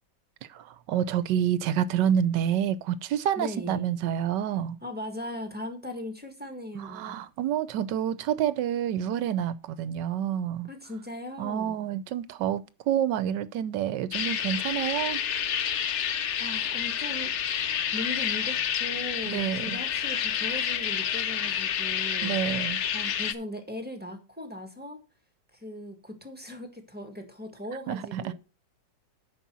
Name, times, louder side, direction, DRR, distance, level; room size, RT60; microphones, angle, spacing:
voice 1, 0.5-4.8 6.7-10.7 11.4-15.2 19.3-19.8 22.2-22.8 27.9-28.3, right 10 dB, 75° right, 1.2 m, -28 dB
voice 2, 3.4-3.9 4.8-7.1 10.7-11.8 16.4-17.3 17.9-22.4 22.9-25.0 25.5-28.3, left 1 dB, 5° right, 1.5 m, -38 dB
sound 1, 14.1-23.3, left 9 dB, 70° left, 0.6 m, -29 dB
9.3 x 5.6 x 6.1 m
omnidirectional pair, 2.0 m